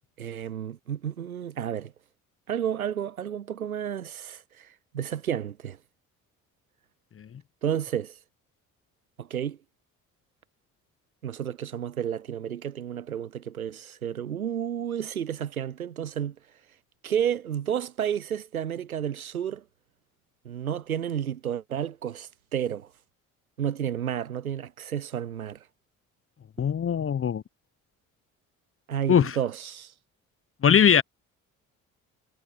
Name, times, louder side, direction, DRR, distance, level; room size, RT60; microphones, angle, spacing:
voice 1, 0.2-1.9 2.5-5.8 7.6-8.2 9.2-9.6 11.2-16.3 17.0-19.6 20.4-22.9 23.6-25.6 28.9-29.9, right 9 dB, 90° right, 0.7 m, -31 dB
voice 2, 26.6-27.4 29.1-29.4 30.6-31.0, left 8 dB, 30° left, 1.0 m, -20 dB
figure-of-eight pair, 45°, 41 cm